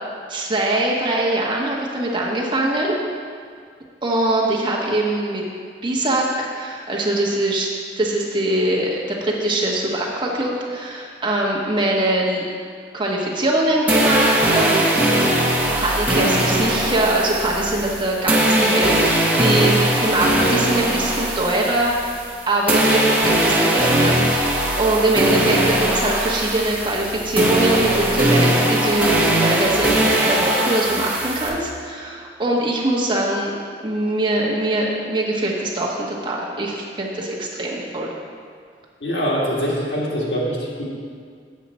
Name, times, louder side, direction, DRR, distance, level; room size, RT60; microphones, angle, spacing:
voice 1, 0.3-2.9 4.0-5.4 5.8-7.7 8.0-12.4 12.9-14.8 15.8-22.1 22.5-23.1 23.4-33.5 33.8-38.1, right 1 dB, 30° right, -3 dB, 1.1 m, -22 dB
sound 1, 13.9-22.4 22.7-31.5, right 1 dB, 10° right, 1.2 m, -20 dB
voice 2, 39.0-40.8, equal, 80° left, -4 dB, 1.8 m, -23 dB
7.3 x 7.3 x 4.2 m, 2.1 s
head